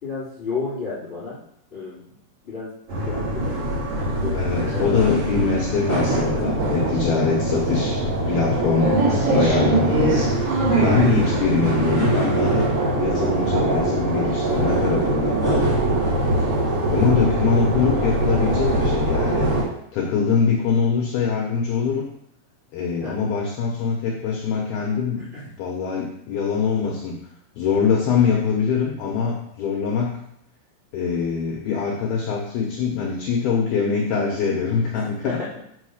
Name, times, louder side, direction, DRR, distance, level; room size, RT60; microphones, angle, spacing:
voice 1, 0.0-1.4 1.7-2.0 2.4-2.7 3.1-3.7 4.0-5.0 5.9-6.7 11.1-11.5 16.6-16.9 23.0-23.3 25.2-25.5 35.2-35.6, left 3 dB, 15° left, -13 dB, 2.8 m, -32 dB
sound 1, 2.9-19.6, right 2 dB, 35° right, 3.5 m, -22 dB
voice 2, 4.3-9.0 9.3-10.3 10.8-15.7 16.9-19.5 19.9-22.0 22.7-25.2 25.6-27.2 27.6-30.2 30.9-35.4, left 5 dB, 75° left, -1 dB, 2.3 m, -23 dB
6.7 x 5.6 x 6.5 m, 0.74 s
omnidirectional pair, 5.7 m